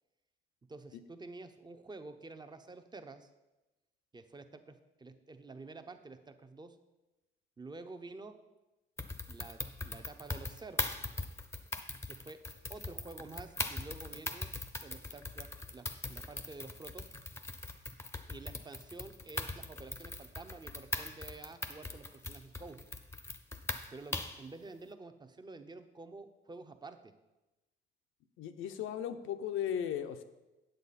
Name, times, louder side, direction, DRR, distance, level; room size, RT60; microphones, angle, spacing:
voice 1, 0.7-3.3 4.1-6.8 7.6-8.4 9.3-10.8 12.1-12.4 12.7-14.5 14.8-17.1 18.3-22.8 23.9-27.1, right 3 dB, 20° right, 8 dB, 0.7 m, -49 dB
sound 1, 9.0-24.5, left 2 dB, 15° left, 0.7 m, -41 dB
voice 2, 28.4-30.2, left 9 dB, 90° left, 10 dB, 0.7 m, -36 dB
9.1 x 7.6 x 4.1 m, 1.0 s
cardioid pair, 90°, 20 cm